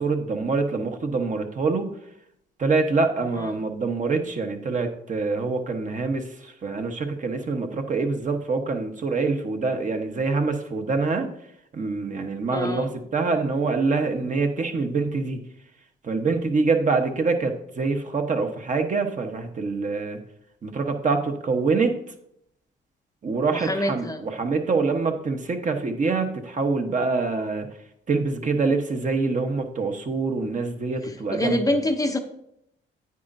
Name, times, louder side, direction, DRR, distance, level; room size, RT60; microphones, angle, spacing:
voice 1, 0.0-1.9 2.6-11.3 11.7-15.4 16.0-20.2 20.6-21.9 23.2-27.7 28.1-31.8, right 4 dB, 40° right, 5 dB, 1.0 m, -25 dB
voice 2, 12.5-12.9 23.5-24.2 31.3-32.2, left 1 dB, 15° left, 6 dB, 0.6 m, -26 dB
9.4 x 8.9 x 2.6 m, 0.77 s
cardioid pair, 90°, 20 cm